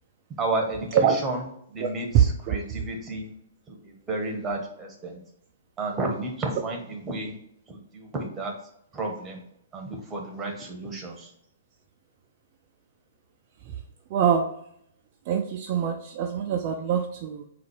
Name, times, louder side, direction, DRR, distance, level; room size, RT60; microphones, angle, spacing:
voice 1, 0.4-3.3 3.7-5.2 5.8-7.3 7.7-8.5 8.9-9.4 9.7-11.3, right 2 dB, 15° right, 1 dB, 1.1 m, -32 dB
voice 2, 1.8-2.6 13.6-13.8 14.1-14.5 15.3-17.4, right 8 dB, 40° right, 2 dB, 0.4 m, -24 dB
4.0 x 2.5 x 4.7 m, 0.72 s
figure-of-eight pair, 120°, 0 cm